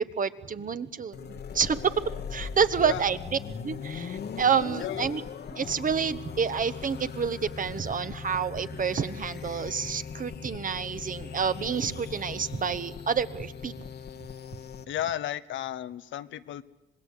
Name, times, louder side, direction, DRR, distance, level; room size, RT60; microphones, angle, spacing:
voice 1, 0.0-1.8 2.3-3.2 3.6-5.2 5.5-13.7, right 6 dB, 45° right, 12 dB, 1.3 m, -28 dB
sound 1, 1.1-14.8, left 6 dB, 55° left, 1.5 m, -39 dB
voice 2, 14.9-16.6, left 12 dB, 70° left, 14 dB, 1.0 m, -33 dB
26.0 x 20.0 x 8.4 m, 0.94 s
cardioid pair, 90°, 20 cm